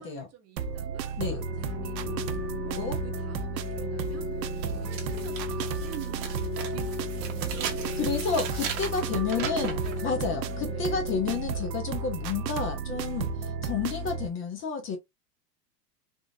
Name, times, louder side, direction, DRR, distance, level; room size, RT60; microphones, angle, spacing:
voice 1, 0.0-1.2 1.6-7.2 7.5-8.1 8.9-11.0, right 9 dB, 30° right, 1.0 m, -48 dB
sound 1, 0.6-14.3, right 5 dB, 85° right, 0.7 m, -33 dB
Organ, 1.2-12.2, left 6 dB, 65° left, 1.2 m, -38 dB
sound 2, 4.0-4.1 4.6-10.0, right 8 dB, 50° right, 1.2 m, -37 dB
voice 2, 8.0-15.0, left 6 dB, 25° left, 0.8 m, -31 dB
3.6 x 2.4 x 2.6 m
hypercardioid pair, 115°, 49 cm